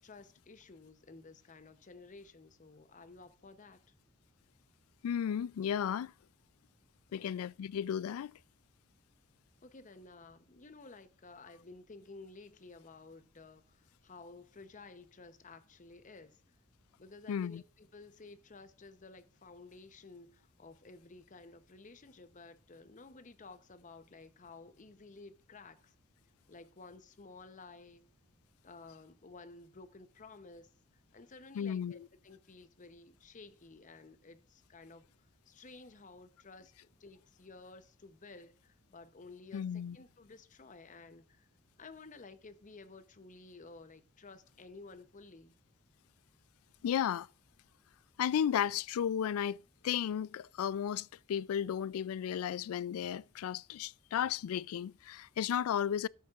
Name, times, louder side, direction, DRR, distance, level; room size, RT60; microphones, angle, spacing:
voice 1, 0.0-3.8 7.1-7.3 9.6-16.4 17.0-25.9 26.5-28.0 28.6-30.7 31.1-35.0 35.5-41.5 41.8-45.5, left 3 dB, 35° left, 0.8 m, -54 dB
voice 2, 5.0-6.1 7.1-8.3 17.3-17.6 31.6-32.1 39.5-40.0 46.8-47.3 48.2-49.6 49.8-56.1, left 9 dB, 90° left, 0.3 m, -34 dB
12.0 x 7.5 x 2.4 m
head